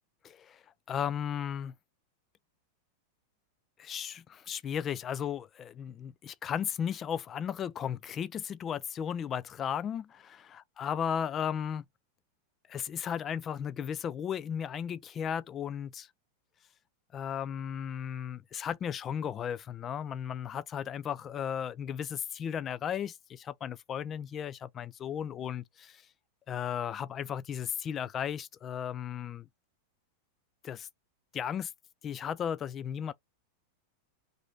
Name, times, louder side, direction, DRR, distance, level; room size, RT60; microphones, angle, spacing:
voice 1, 0.2-0.6 0.9-1.7 3.8-11.8 12.7-16.1 17.1-26.0 26.5-29.5 30.6-30.9 31.3-31.7 32.0-33.1, left 8 dB, 25° left, 0.3 m, -35 dB
3.0 x 2.7 x 3.3 m
figure-of-eight pair, 90°, 0 cm